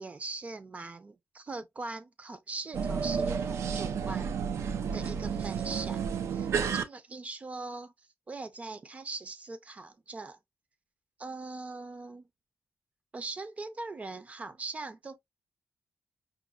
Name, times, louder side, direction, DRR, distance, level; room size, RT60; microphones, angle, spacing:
voice 1, 0.0-4.4 4.9-6.0 6.3-10.4 11.2-12.3 13.1-15.3, right 3 dB, 30° right, 0.5 m, -41 dB
sound 1, 2.7-6.8, right 6 dB, 85° right, 0.4 m, -31 dB
4.9 x 2.2 x 2.2 m
wide cardioid pair, 140°, 5 cm